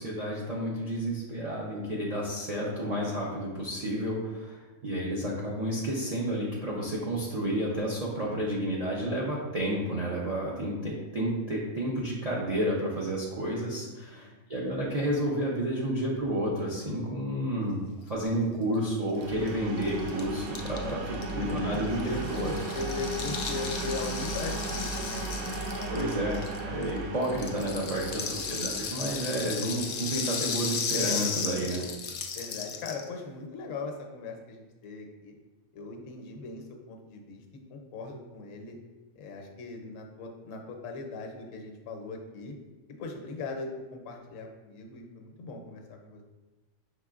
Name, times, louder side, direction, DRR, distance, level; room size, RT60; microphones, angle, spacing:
voice 1, 0.0-17.8 18.1-22.5 25.9-26.4 26.6-31.8, right 1 dB, 50° right, -5 dB, 0.4 m, -31 dB
voice 2, 13.9-14.4 20.6-26.0 28.0-28.3 29.0-29.1 29.4-29.6 31.6-31.8 32.3-35.3 35.7-37.4 37.7-38.8 39.1-42.5 43.0-46.2, left 3 dB, 70° left, 3 dB, 1.0 m, -40 dB
sound 1, 19.1-30.8, right 2 dB, 85° right, 1.1 m, -36 dB
Rattle (instrument), 19.2-19.3 19.5-19.6 19.8-26.9 27.2-33.1, left 5 dB, 85° left, 0.4 m, -35 dB
5.6 x 3.2 x 2.4 m, 1.2 s
omnidirectional pair, 1.4 m